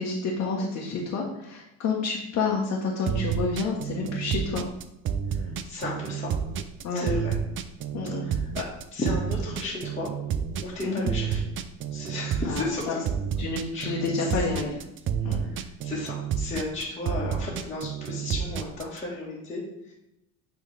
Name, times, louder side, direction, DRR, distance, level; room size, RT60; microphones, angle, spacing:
voice 1, 0.0-4.7 6.8-7.1 7.9-8.3 10.8-11.1 12.5-12.9 13.4-14.8 15.2-15.4, left 4 dB, 55° left, -3 dB, 1.2 m, -29 dB
sound 1, 3.1-19.0, right 8 dB, 40° right, 0.5 m, -30 dB
voice 2, 5.3-6.3 6.9-7.3 8.2-8.6 8.9-10.1 10.6-11.4 11.9-13.0 13.7-13.9 14.2-14.4 15.4-19.9, left 2 dB, 20° left, -7 dB, 1.6 m, -34 dB
9.1 x 3.4 x 3.4 m, 0.84 s
cardioid pair, 115°, 32 cm